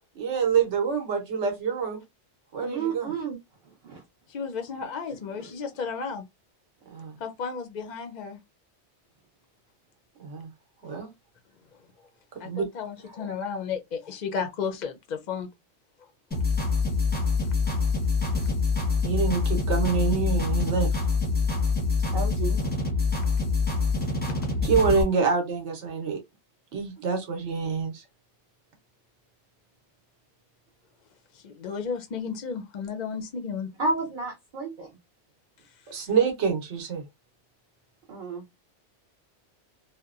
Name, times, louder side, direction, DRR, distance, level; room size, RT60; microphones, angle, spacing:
voice 1, 0.2-2.0 2.5-3.1 6.9-7.2 10.2-10.5 10.8-11.1 12.4-12.7 19.0-21.0 24.6-26.2 26.7-28.0 35.9-37.0, right 6 dB, 75° right, 1.1 m, -26 dB
voice 2, 2.6-3.4 3.8-4.0 5.4-5.5 22.1-22.7 33.8-34.9 38.1-38.4, right 4 dB, 50° right, 0.8 m, -31 dB
voice 3, 4.3-6.2 7.2-8.4 12.4-15.5 31.3-33.7, left 6 dB, 55° left, 0.5 m, -33 dB
sound 1, 16.3-25.0, left 4 dB, 10° left, 0.7 m, -25 dB
2.8 x 2.0 x 2.4 m
omnidirectional pair, 1.2 m